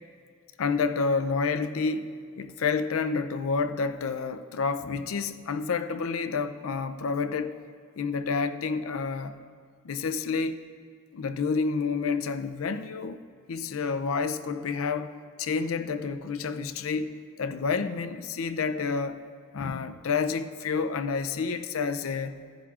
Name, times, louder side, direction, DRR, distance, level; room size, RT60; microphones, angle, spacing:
voice 1, 0.6-7.6 8.0-9.4 9.8-10.6 11.1-13.2 13.5-15.1 15.4-19.3 19.5-22.5, left 5 dB, 80° left, 0.5 m, -29 dB
14.5 x 10.5 x 2.4 m
head